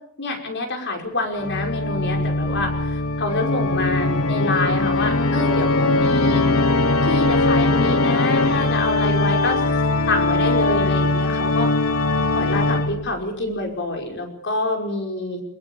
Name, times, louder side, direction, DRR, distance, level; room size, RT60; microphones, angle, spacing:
voice 1, 0.2-6.5 7.1-9.6 10.1-11.7 12.4-15.4, left 2 dB, 60° left, 3 dB, 5.4 m, -26 dB
Organ, 1.4-13.2, left 2 dB, 90° left, 1.3 m, -20 dB
23.5 x 22.0 x 7.2 m, 0.77 s
head